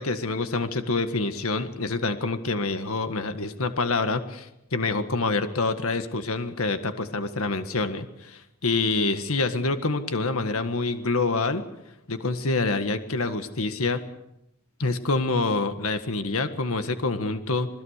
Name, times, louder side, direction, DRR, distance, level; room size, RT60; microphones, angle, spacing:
voice 1, 0.0-11.6 12.1-14.0 14.8-17.7, left 3 dB, 75° left, 9 dB, 1.7 m, -26 dB
27.0 x 20.5 x 6.6 m, 0.86 s
head